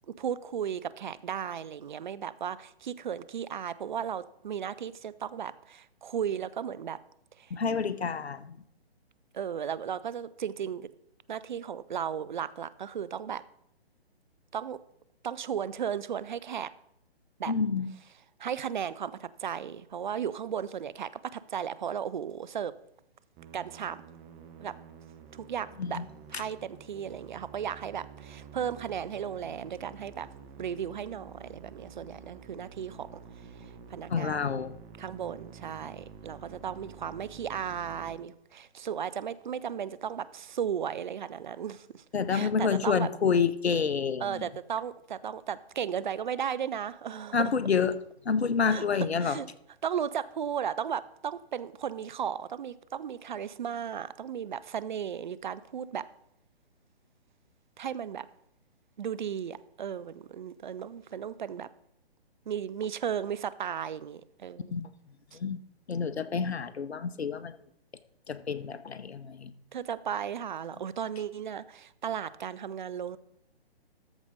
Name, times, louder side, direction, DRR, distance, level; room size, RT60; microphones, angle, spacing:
voice 1, 0.1-7.0 7.4-7.5 9.3-10.9 11.3-13.4 14.5-14.8 15.2-16.7 17.4-17.5 18.4-22.7 23.5-24.0 24.6-24.8 25.3-26.0 26.3-30.3 30.6-33.2 33.6-34.5 35.0-42.0 42.3-43.1 44.2-47.5 48.7-49.5 49.8-56.1 57.8-58.3 59.0-61.7 62.5-64.8 65.3-65.4 69.7-73.2, right 8 dB, 50° right, 17 dB, 0.5 m, -35 dB
voice 2, 7.5-8.6 17.5-17.9 25.8-26.1 34.1-34.8 42.1-44.4 47.3-48.0 48.2-49.4 64.7-64.9 65.3-65.6 65.9-67.6 68.3-69.5, left 6 dB, 80° left, 14 dB, 0.8 m, -28 dB
Musical instrument, 23.4-38.2, right 6 dB, 15° right, 0.8 m, -50 dB
13.5 x 4.8 x 5.4 m, 0.75 s
figure-of-eight pair, 140°, 32 cm